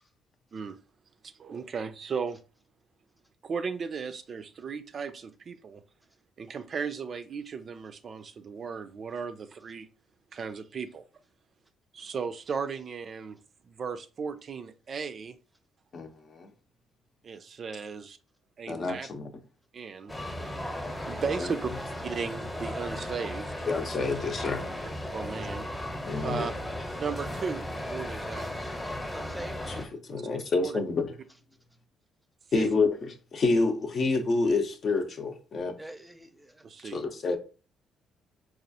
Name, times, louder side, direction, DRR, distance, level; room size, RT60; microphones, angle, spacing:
voice 1, 1.2-2.4 3.4-5.8 6.4-9.9 10.3-11.0 11.9-13.4 13.6-15.4 17.2-18.2 18.6-19.1 19.7-20.1 20.4-20.5 20.8-21.7 22.0-23.5 25.1-25.7 26.2-26.5 27.0-28.5 30.1-30.2 30.6-30.8 32.6-32.7 36.6-37.0, right 5 dB, 50° right, 0.4 m, -36 dB
voice 2, 15.9-16.5 18.7-19.3 21.4-21.5 23.7-24.6 26.0-26.5 29.7-31.1 32.5-35.8 36.9-37.4, left 3 dB, 50° left, 0.7 m, -28 dB
sound 1, 20.1-29.9, left 1 dB, 15° left, 0.8 m, -36 dB
voice 3, 29.1-29.6 35.8-36.6, right 1 dB, 10° right, 0.6 m, -44 dB
4.2 x 2.4 x 2.7 m
supercardioid pair, 65°, 0 cm